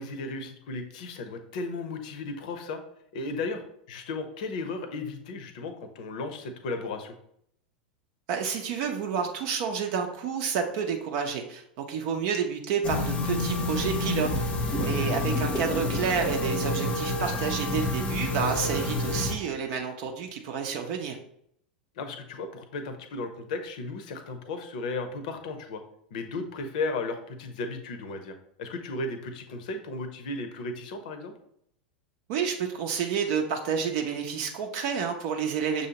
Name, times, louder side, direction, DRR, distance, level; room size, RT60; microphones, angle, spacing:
voice 1, 0.0-2.8 3.1-7.1 14.8-15.2 21.9-25.8 26.1-31.3, left 3 dB, 55° left, 8 dB, 0.7 m, -35 dB
voice 2, 8.3-14.3 14.8-21.2 32.3-35.9, right 6 dB, 50° right, 3 dB, 0.6 m, -29 dB
sound 1, 12.8-19.3, left 1 dB, 25° left, 0.7 m, -28 dB
6.5 x 2.8 x 2.9 m, 0.70 s
figure-of-eight pair, 85°, 5 cm